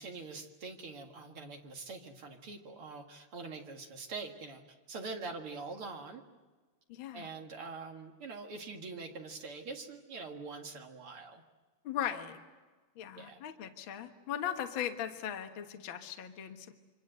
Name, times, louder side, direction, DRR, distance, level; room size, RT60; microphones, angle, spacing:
voice 1, 0.0-6.2 7.1-11.4 13.1-13.4, right 4 dB, 45° right, 3 dB, 2.0 m, -44 dB
voice 2, 6.9-7.3 11.8-12.4 13.0-16.7, left 10 dB, 80° left, 6 dB, 1.1 m, -38 dB
27.5 x 25.0 x 8.0 m, 1.3 s
omnidirectional pair, 4.6 m